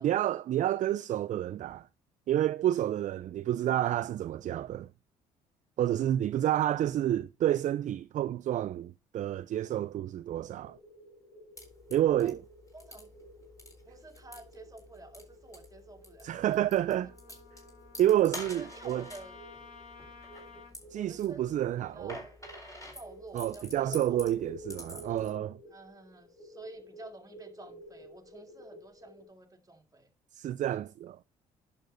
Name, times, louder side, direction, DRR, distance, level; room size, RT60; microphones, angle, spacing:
voice 1, 0.0-1.9 2.3-4.9 5.8-10.8 11.9-12.4 16.2-17.1 18.0-19.0 20.9-22.2 23.3-25.6 30.3-31.2, right 12 dB, 45° right, 0.4 m, -29 dB
sound 1, 10.6-29.2, equal, 80° left, 2.3 m, -52 dB
sound 2, 11.6-25.3, left 1 dB, 20° left, 4.1 m, -48 dB
voice 2, 12.7-13.1 13.9-16.6 18.5-19.4 20.9-22.4 22.9-24.2 25.7-30.1, right 2 dB, 20° right, 1.9 m, -50 dB
Trumpet, 16.2-20.8, left 4 dB, 50° left, 6.0 m, -53 dB
11.0 x 6.5 x 2.6 m
hypercardioid pair, 55°, 17 cm